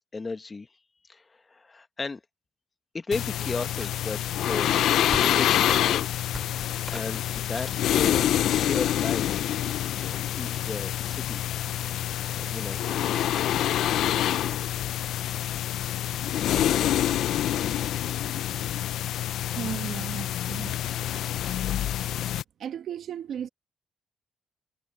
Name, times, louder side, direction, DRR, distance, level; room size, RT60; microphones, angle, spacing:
voice 1, 0.1-0.7 1.1-2.2 2.9-4.9 5.2-6.1 6.6-9.6 10.0-11.4 12.0-13.2, left 3 dB, 30° left, 1.3 m, -35 dB
sound 1, 3.1-22.4, left 12 dB, 80° left, 0.6 m, -27 dB
sound 2, 3.4-4.2 4.5-4.6 4.8-6.0 6.2-8.1 8.7-9.1, right 1 dB, 10° right, 6.2 m, -42 dB
voice 2, 19.4-20.7 22.6-23.5, right 9 dB, 65° right, 1.3 m, -35 dB
cardioid pair, 90°, 0 cm